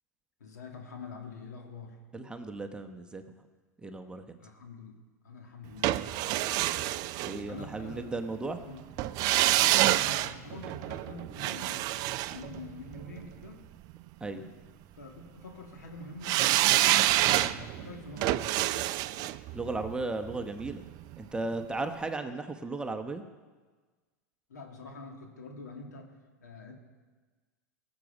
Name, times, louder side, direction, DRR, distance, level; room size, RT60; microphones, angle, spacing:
voice 1, 0.4-2.0 4.4-5.0 5.2-7.0 7.5-8.1 8.6-8.8 9.6-11.9 12.3-13.6 14.3-14.5 14.9-18.6 24.5-26.1 26.4-26.7, left 3 dB, 85° left, 2 dB, 2.1 m, -46 dB
voice 2, 2.1-3.2 3.8-4.4 7.2-8.6 14.2-14.4 19.5-20.8 21.2-23.2, right 3 dB, 10° right, 5 dB, 0.9 m, -35 dB
sound 1, 5.8-7.9 9.0-13.2 16.2-21.2 21.5-21.6, right 16 dB, 45° right, 0.4 m, -28 dB
18.0 x 7.1 x 5.3 m, 1.4 s
hypercardioid pair, 105°, 9 cm